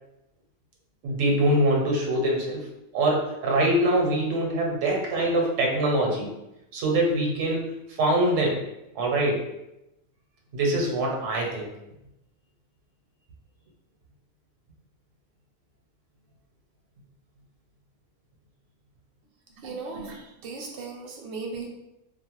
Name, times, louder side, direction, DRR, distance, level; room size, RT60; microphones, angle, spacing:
voice 1, 1.0-2.7 2.9-6.3 6.7-7.7 8.0-8.7 9.0-9.4 10.5-11.7, right 1 dB, 80° right, -1 dB, 1.0 m, -24 dB
voice 2, 19.6-21.7, right 4 dB, 60° right, 0 dB, 0.7 m, -37 dB
2.4 x 2.0 x 2.9 m, 0.89 s
omnidirectional pair, 1.3 m